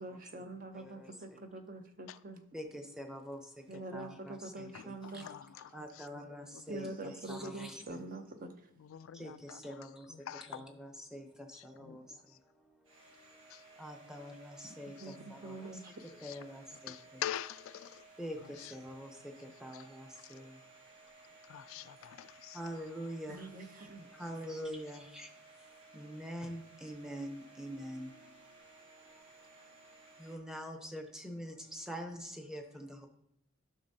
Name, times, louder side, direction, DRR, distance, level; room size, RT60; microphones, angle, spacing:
voice 1, 0.0-2.4 3.7-5.3 6.7-8.5 15.0-16.0 23.3-24.1, right 2 dB, 40° right, 7 dB, 0.6 m, -45 dB
voice 2, 0.7-1.4 2.5-5.2 5.7-8.0 9.1-13.5 13.8-15.8 16.2-16.9 18.2-20.6 22.5-23.7 24.1-25.3 25.7-29.6 29.9-33.1, equal, 5° right, 3 dB, 0.7 m, -46 dB
voice 3, 4.7-7.0 8.8-10.7 11.5-12.4 13.5-13.6 15.0-16.4 16.7-18.1 18.4-19.1 19.7-19.9 20.2-20.4 21.4-22.6 23.0-23.1 23.8-23.9, left 11 dB, 75° left, 14 dB, 0.3 m, -47 dB
Domestic sounds home sounds, 12.8-30.4, right 3 dB, 70° right, 1.9 m, -58 dB
11.5 x 6.1 x 2.7 m, 0.79 s
head